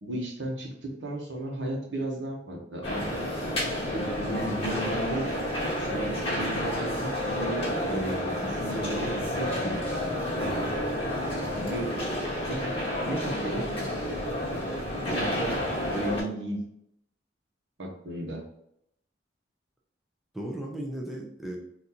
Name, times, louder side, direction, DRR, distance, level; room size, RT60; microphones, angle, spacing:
voice 1, 0.0-3.0 3.9-5.3 5.8-10.2 11.5-11.9 12.5-12.6 13.1-13.9 14.4-14.7 15.1-15.6 15.9-16.6 17.8-18.4, right 1 dB, 75° right, -1 dB, 0.9 m, -34 dB
sound 1, 2.8-16.2, left 1 dB, 30° left, 1.2 m, -30 dB
voice 2, 15.0-15.3 20.3-21.6, right 1 dB, ahead, -2 dB, 0.5 m, -36 dB
3.7 x 2.6 x 2.8 m, 0.76 s
head